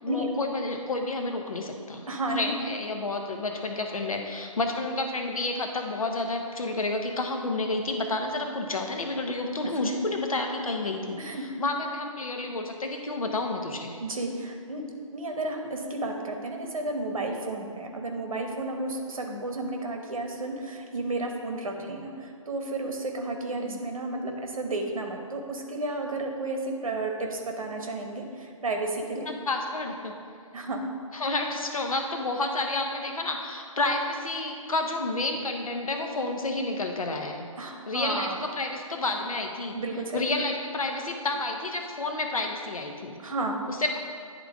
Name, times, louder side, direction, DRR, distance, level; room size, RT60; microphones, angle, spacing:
voice 1, 0.0-2.1 2.3-14.0 19.3-19.4 23.6-23.8 29.3-30.1 31.1-37.4 37.9-39.7 40.1-43.2 43.7-44.0, left 2 dB, 80° left, 3 dB, 1.0 m, -30 dB
voice 2, 2.1-2.5 11.2-11.4 14.0-14.8 15.1-29.3 30.5-30.8 37.6-38.4 39.7-40.2 43.2-43.6, right 2 dB, 75° right, 3 dB, 1.1 m, -32 dB
10.0 x 3.8 x 3.6 m, 2.2 s
figure-of-eight pair, 145°, 18 cm